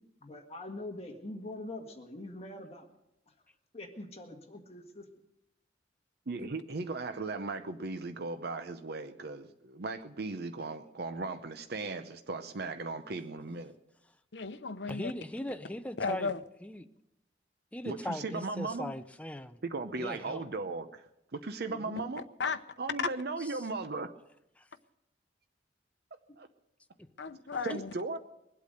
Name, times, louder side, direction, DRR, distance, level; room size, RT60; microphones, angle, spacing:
voice 1, 0.2-2.9 3.7-5.0 21.7-22.1, left 1 dB, 35° left, 1.7 m, -43 dB
voice 2, 6.3-13.7 17.8-18.9 19.6-21.0 21.3-22.2 22.8-24.1 26.4-26.5 27.6-28.2, right 3 dB, 60° right, 0.7 m, -37 dB
voice 3, 14.3-15.1 16.0-16.4 22.4-22.6 27.2-27.9, left 4 dB, 65° left, 0.8 m, -34 dB
voice 4, 14.9-16.3 16.6-16.9 17.7-19.6 20.0-20.4 24.6-24.7 27.0-27.1, left 1 dB, 5° left, 0.6 m, -39 dB
22.5 x 8.4 x 6.6 m
head